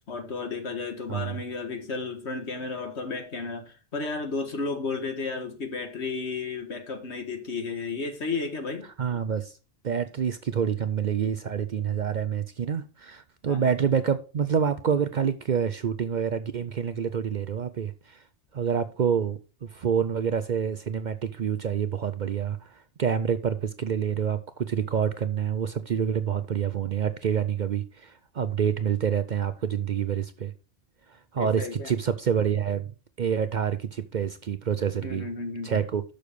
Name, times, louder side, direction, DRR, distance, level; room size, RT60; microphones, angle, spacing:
voice 1, 0.1-8.9 13.5-13.7 31.4-31.9 35.0-35.8, left 4 dB, 75° left, 1.9 m, -33 dB
voice 2, 1.1-1.4 9.0-9.6 9.8-18.2 18.5-30.5 31.1-32.9 33.2-35.3 35.6-36.0, right 7 dB, 55° right, 0.6 m, -27 dB
6.7 x 6.4 x 5.2 m
omnidirectional pair, 1.2 m